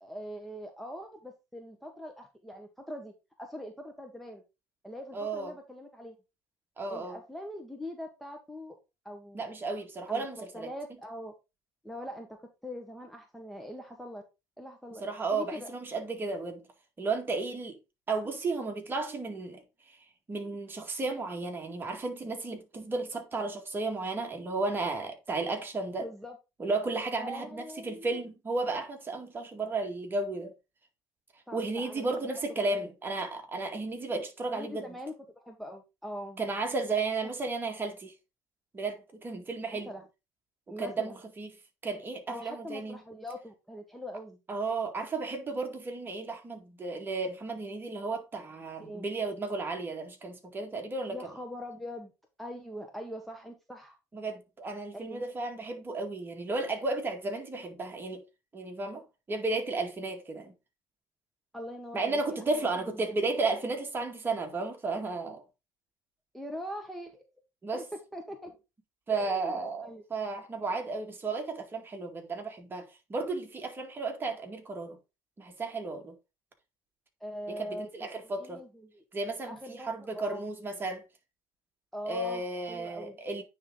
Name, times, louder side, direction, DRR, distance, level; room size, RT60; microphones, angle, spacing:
voice 1, 0.0-4.4 4.8-6.1 6.9-8.8 9.0-9.4 10.1-11.3 11.8-14.2 14.6-15.0 15.3-15.7 26.0-26.4 27.1-28.2 31.5-32.1 32.6-32.9 34.5-36.4 39.8-40.0 40.7-41.2 42.3-44.4 48.8-49.0 51.1-52.1 52.4-54.0 54.9-55.3 61.5-63.2 66.3-67.2 67.7-68.6 69.1-70.0 77.2-77.9 78.3-79.0 79.5-80.4 81.9-82.4 82.7-83.2, equal, ahead, 1.4 m, -42 dB
voice 2, 5.1-5.5 6.8-7.2 9.3-10.7 15.0-16.6 17.0-17.8 18.1-19.6 19.9-20.0 20.3-26.1 26.6-30.5 31.5-34.9 36.4-38.1 38.7-39.9 40.7-41.5 41.8-43.0 44.5-51.2 54.1-58.2 58.5-60.5 61.9-65.4 67.6-67.8 69.1-75.0 75.4-76.1 77.6-78.6 79.1-81.0 82.0-83.4, right 3 dB, 25° right, 2.1 m, -33 dB
9.4 x 3.7 x 3.8 m
hypercardioid pair, 80°, 9 cm